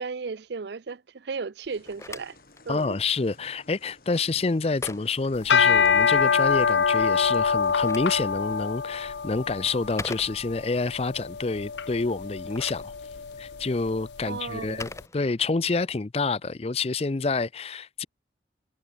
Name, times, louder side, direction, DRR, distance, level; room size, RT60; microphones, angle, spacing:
voice 1, 0.0-2.4 2.7-3.0 14.3-14.9, right 4 dB, 70° right, 0.5 m, -35 dB
Telephone, 1.6-6.2 7.4-10.8 12.2-15.8, left 2 dB, 15° left, 3.0 m, -44 dB
sound 1, 1.7-13.9, left 2 dB, 50° left, 4.5 m, -56 dB
voice 2, 2.7-12.9 13.4-18.1, left 3 dB, 35° left, 0.5 m, -28 dB
sound 2, 5.3-14.7, left 6 dB, 75° left, 0.6 m, -25 dB
head